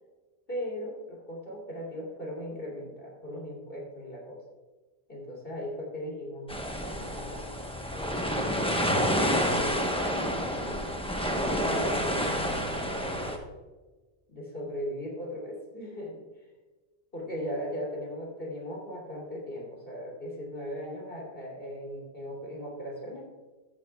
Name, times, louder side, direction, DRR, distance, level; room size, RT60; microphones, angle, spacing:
voice 1, 0.5-4.4 5.1-7.5 7.9-11.0 11.2-13.4 14.3-16.2 17.1-23.2, equal, 65° left, -2 dB, 3.2 m, -38 dB
sound 1, 6.5-13.4, equal, 5° left, 0.9 m, -29 dB
14.0 x 9.4 x 2.3 m, 1.3 s
omnidirectional pair, 1.0 m